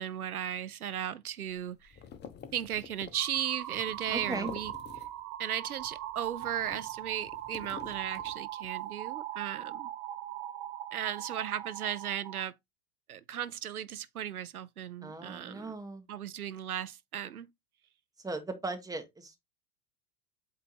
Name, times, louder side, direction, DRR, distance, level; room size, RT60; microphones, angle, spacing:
voice 1, 0.0-2.0 2.5-4.7 5.4-9.9 10.9-12.5 13.1-15.8 16.1-17.5, right 10 dB, 80° right, 0.6 m, -36 dB
sound 1, 1.5-5.4 5.7-8.8, left 7 dB, 25° left, 1.0 m, -49 dB
sound 2, 3.1-12.4, right 13 dB, 40° right, 0.7 m, -40 dB
voice 2, 4.1-4.5 15.0-16.0 18.2-19.4, right 3 dB, 10° right, 1.3 m, -38 dB
8.2 x 2.8 x 4.6 m
figure-of-eight pair, 80°, 44 cm